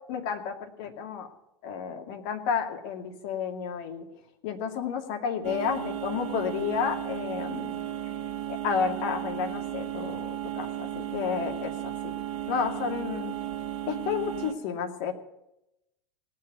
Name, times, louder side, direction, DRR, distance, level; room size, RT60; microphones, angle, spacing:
voice 1, 0.1-1.3 1.6-4.1 4.4-7.9 8.5-12.1 12.5-13.4 13.9-15.1, left 7 dB, 50° left, 4 dB, 2.3 m, -31 dB
sound 1, 5.4-14.5, right 12 dB, 40° right, 1.9 m, -34 dB
18.5 x 7.6 x 9.4 m, 0.86 s
figure-of-eight pair, 90°, 14 cm